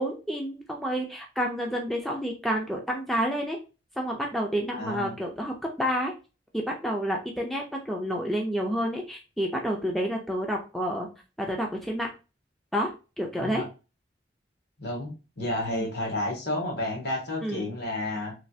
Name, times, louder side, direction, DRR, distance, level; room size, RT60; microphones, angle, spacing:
voice 1, 0.0-3.6 4.0-6.1 6.5-11.1 11.4-12.1 12.7-13.6 15.7-15.9 17.4-17.7, equal, ahead, 0 dB, 0.3 m, -29 dB
voice 2, 4.7-5.2 13.4-13.6 14.8-18.3, left 1 dB, 60° left, 1 dB, 1.0 m, -31 dB
3.1 x 2.3 x 2.6 m, 0.31 s
head